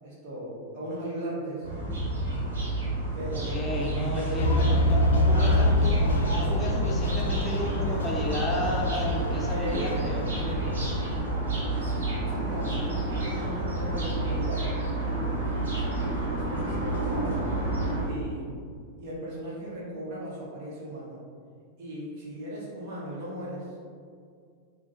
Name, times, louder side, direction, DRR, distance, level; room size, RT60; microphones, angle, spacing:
voice 1, 0.0-1.7 3.1-3.6 4.1-4.5 5.3-5.7 8.3-8.5 9.5-10.0 10.3-10.9 11.8-12.8 13.1-14.7 16.1-17.4 18.0-18.5 19.0-21.2 21.8-23.7, right 1 dB, 50° right, -5 dB, 1.2 m, -37 dB
sound 1, 1.6-18.0, right 2 dB, 70° right, 0.9 m, -30 dB
voice 2, 3.3-10.3, left 1 dB, 20° left, -2 dB, 0.6 m, -33 dB
sound 2, 4.4-11.4, left 1 dB, 65° left, 0.4 m, -26 dB
3.7 x 2.3 x 3.8 m, 2.2 s
figure-of-eight pair, 90°, 0 cm